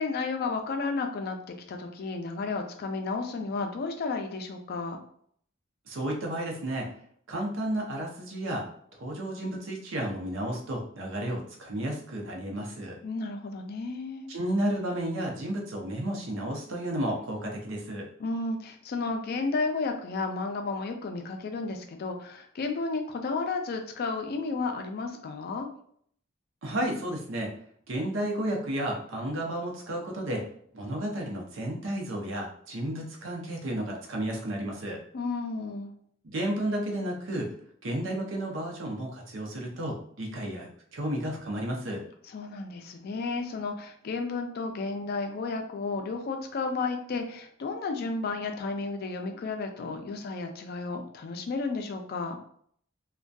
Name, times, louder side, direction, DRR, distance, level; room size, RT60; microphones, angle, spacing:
voice 1, 0.0-5.0 13.0-14.3 18.2-25.7 35.1-35.9 42.3-52.4, left 3 dB, 55° left, 5 dB, 0.4 m, -32 dB
voice 2, 5.9-6.9 7.3-8.7 8.9-13.0 14.3-18.1 26.6-27.5 27.9-30.4 30.7-35.0 36.2-37.5 37.8-42.0, right 1 dB, 85° right, 0 dB, 0.6 m, -32 dB
2.6 x 2.2 x 2.2 m, 0.63 s
head